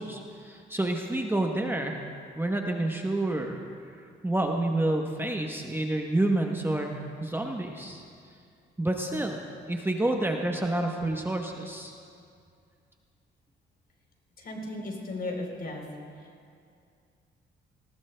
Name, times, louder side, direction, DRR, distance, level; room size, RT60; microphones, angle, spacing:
voice 1, 0.0-2.1 2.3-3.6 4.2-8.0 8.8-9.4 9.7-11.9, right 1 dB, 10° right, 2 dB, 0.9 m, -29 dB
voice 2, 14.4-15.8, left 2 dB, 50° left, 0 dB, 3.5 m, -35 dB
19.0 x 19.0 x 2.2 m, 2.3 s
cardioid pair, 90°, 20 cm